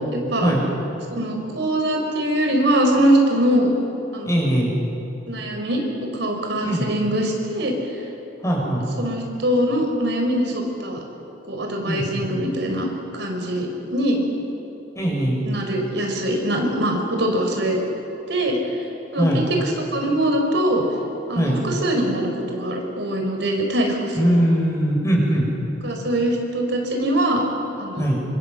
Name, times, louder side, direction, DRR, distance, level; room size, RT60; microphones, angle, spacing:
voice 1, 0.1-0.5 1.1-3.7 4.1-4.3 5.3-7.7 9.0-11.0 11.5-12.9 13.2-14.2 15.4-17.8 18.3-18.6 19.1-19.4 19.9-20.8 21.3-24.4 25.8-27.4 27.8-28.2, right 1 dB, 70° right, 2 dB, 5.0 m, -22 dB
voice 2, 4.2-4.7 6.6-6.9 8.4-8.8 11.9-12.2 14.9-15.4 19.2-19.4 21.3-21.6 24.2-25.5 28.0-28.2, equal, 15° left, -2 dB, 6.8 m, -21 dB
26.5 x 26.0 x 7.9 m, 2.9 s
head